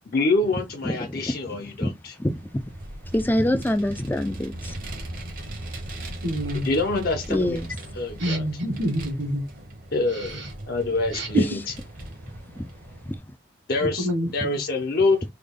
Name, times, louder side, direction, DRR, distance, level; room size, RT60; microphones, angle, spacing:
voice 1, 0.1-2.1 6.5-7.6 8.0-8.4 9.9-11.6 13.7-15.3, left 3 dB, 50° left, 0.6 m, -26 dB
voice 2, 0.8-1.3 1.6-1.9 2.2-2.5 3.1-4.7 7.3-7.7 11.4-11.6 12.6-12.7 13.0-13.2, left 1 dB, 10° left, 0.4 m, -25 dB
Vehicle, 2.3-13.2, right 1 dB, 45° right, 0.9 m, -38 dB
voice 3, 6.2-6.7 8.2-9.4 10.3-10.4 11.1-11.3 13.8-14.6, equal, 65° right, 1.4 m, -27 dB
3.4 x 2.2 x 3.6 m
head